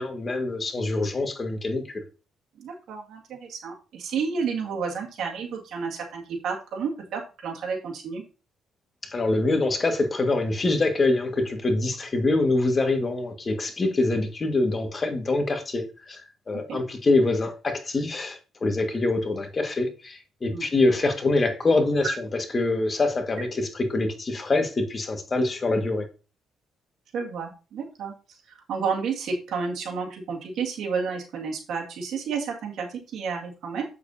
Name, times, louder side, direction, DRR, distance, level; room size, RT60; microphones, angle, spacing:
voice 1, 0.0-2.0 9.1-16.2 16.5-22.1 22.5-26.0, left 2 dB, 35° left, 1.6 m, -25 dB
voice 2, 2.6-8.2 16.5-16.8 20.5-20.7 27.1-28.1 28.5-33.8, right 5 dB, 75° right, 1.9 m, -31 dB
7.9 x 6.7 x 2.7 m
cardioid pair, 90°, 0 cm